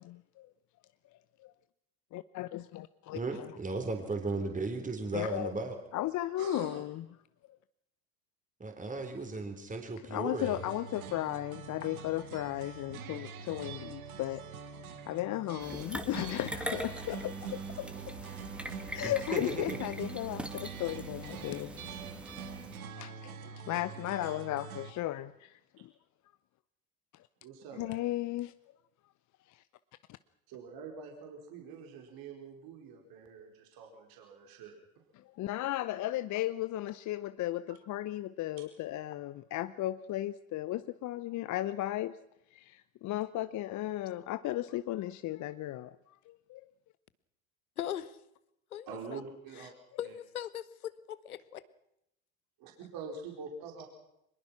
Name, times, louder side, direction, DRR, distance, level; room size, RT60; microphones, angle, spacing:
voice 1, 0.1-0.5 1.4-1.5 2.1-3.5 5.1-5.5 5.9-7.0 10.1-14.4 15.1-18.3 18.9-21.7 23.0-25.9 27.8-28.5 29.5-29.6 35.4-42.2 42.5-46.6, left 15 dB, 45° left, 0.8 m, -35 dB
voice 2, 3.1-5.8 8.6-10.6 19.0-19.8 27.8-27.9, right 3 dB, 20° right, 3.7 m, -36 dB
voice 3, 6.4-6.8 17.8-18.0 23.4-23.5 27.4-28.0 30.5-34.8 38.6-38.7 48.9-49.7 50.0-50.1 52.6-53.8, right 5 dB, 55° right, 4.6 m, -45 dB
sound 1, 10.4-24.9, right 6 dB, 80° right, 1.9 m, -44 dB
sound 2, 15.6-22.8, equal, ahead, 2.3 m, -42 dB
voice 4, 47.8-48.2 48.7-49.2 50.0-51.6, left 11 dB, 85° left, 1.2 m, -39 dB
24.0 x 21.5 x 6.0 m
hypercardioid pair, 75°, 42 cm